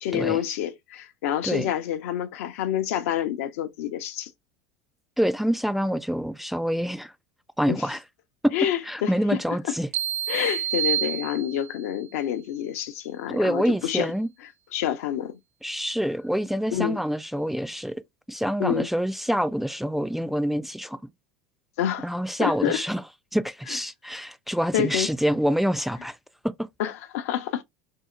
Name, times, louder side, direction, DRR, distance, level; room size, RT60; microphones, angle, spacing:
voice 1, 0.0-4.3 7.7-7.9 8.5-9.4 9.7-9.8 10.3-14.1 14.7-15.4 16.7-17.0 18.6-18.9 21.8-22.1 22.4-22.8 23.7-23.8 24.7-25.1 26.8-27.6, left 11 dB, 70° left, 0.7 m, -28 dB
voice 2, 5.2-7.1 7.6-8.0 8.4-8.5 8.9-9.9 13.3-14.3 15.6-18.0 18.3-21.0 22.0-23.0 23.3-26.2 26.4-26.5, equal, ahead, 0.4 m, -26 dB
sound 1, 9.9-11.9, right 11 dB, 70° right, 0.6 m, -28 dB
2.7 x 2.1 x 3.7 m
hypercardioid pair, 85°, 8 cm